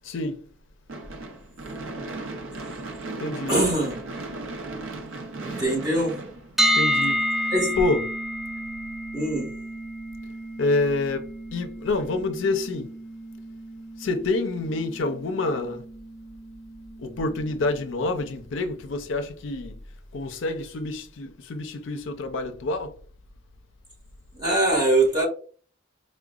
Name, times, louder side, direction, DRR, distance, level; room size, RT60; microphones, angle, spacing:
voice 1, 0.0-0.4 3.2-3.6 5.5-5.6 6.7-7.5 7.8-8.0 10.6-12.9 14.0-15.8 17.0-19.7 20.1-22.9, left 2 dB, 70° left, 0.5 m, -27 dB
Gunshot gunfire / Fireworks, 0.9-7.2, right 2 dB, 75° right, 0.6 m, -36 dB
voice 2, 3.5-3.9 5.4-6.2 7.5-7.7 9.1-9.5 24.3-25.3, right 2 dB, 20° right, 1.4 m, -22 dB
sound 1, 6.6-18.5, equal, ahead, 0.4 m, -31 dB
4.7 x 2.1 x 2.3 m
head